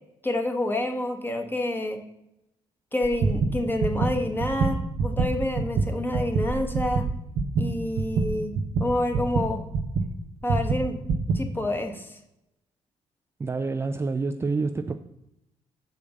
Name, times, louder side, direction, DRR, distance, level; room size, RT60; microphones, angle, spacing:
voice 1, 0.2-2.0 2.9-7.1 7.6-8.5 8.8-9.6 10.4-11.0 11.3-12.2, left 1 dB, 15° left, 4 dB, 1.2 m, -28 dB
sound 1, 3.0-10.1 10.5-11.4, right 4 dB, 65° right, 0.8 m, -26 dB
voice 2, 13.4-15.0, right 3 dB, 20° right, 7 dB, 0.4 m, -27 dB
6.5 x 5.1 x 6.9 m, 0.84 s
cardioid pair, 90°, 12 cm